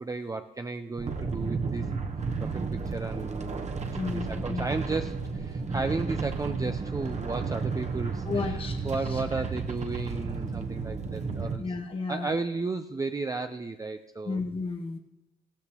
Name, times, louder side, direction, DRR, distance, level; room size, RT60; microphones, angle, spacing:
voice 1, 0.0-1.9 2.4-3.7 4.1-11.7 12.1-14.4, right 3 dB, 15° right, 7 dB, 0.5 m, -34 dB
sound 1, 1.0-11.6, right 4 dB, 35° right, 1.0 m, -32 dB
voice 2, 4.0-4.7 8.3-9.2 11.6-12.3 14.2-15.0, left 4 dB, 30° left, 3 dB, 0.9 m, -33 dB
15.0 x 13.0 x 3.0 m, 0.94 s
cardioid pair, 90°, 20 cm